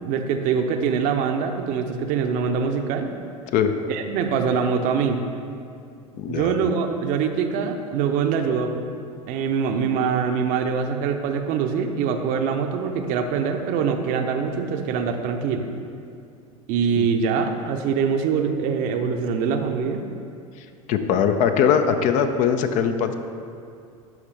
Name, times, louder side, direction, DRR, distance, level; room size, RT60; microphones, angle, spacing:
voice 1, 0.0-3.1 3.9-5.2 6.3-8.8 9.3-15.7 16.7-20.0, right 6 dB, 50° right, 5 dB, 0.7 m, -24 dB
voice 2, 6.2-6.6 17.0-17.1 20.9-23.1, left 7 dB, 45° left, 8 dB, 0.5 m, -21 dB
12.0 x 5.0 x 3.3 m, 2.5 s
figure-of-eight pair, 75°, 18 cm